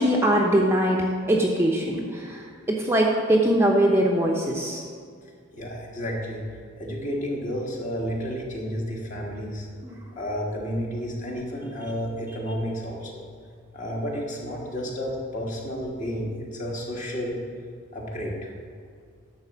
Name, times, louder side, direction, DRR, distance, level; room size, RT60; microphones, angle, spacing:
voice 1, 0.0-2.4 2.7-4.8 9.8-10.0, right 1 dB, 10° right, -1 dB, 0.7 m, -22 dB
voice 2, 5.5-6.4 6.8-9.7 10.2-13.3 13.7-17.4 17.9-18.5, equal, 40° left, -2 dB, 1.8 m, -31 dB
11.0 x 4.2 x 7.1 m, 2.2 s
head